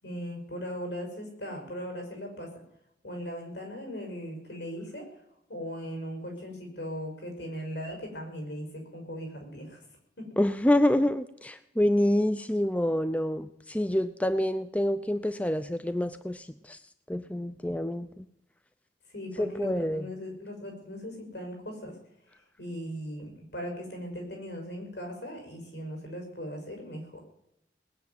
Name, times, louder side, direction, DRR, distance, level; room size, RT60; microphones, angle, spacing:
voice 1, 0.0-2.5 3.0-5.1 5.5-9.8 10.2-10.3 19.1-22.0 22.6-27.2, equal, 75° left, 2 dB, 6.0 m, -38 dB
voice 2, 10.4-16.8 17.1-18.2 19.4-20.0, left 1 dB, 10° left, 11 dB, 0.5 m, -27 dB
19.5 x 7.1 x 9.5 m, 0.80 s
head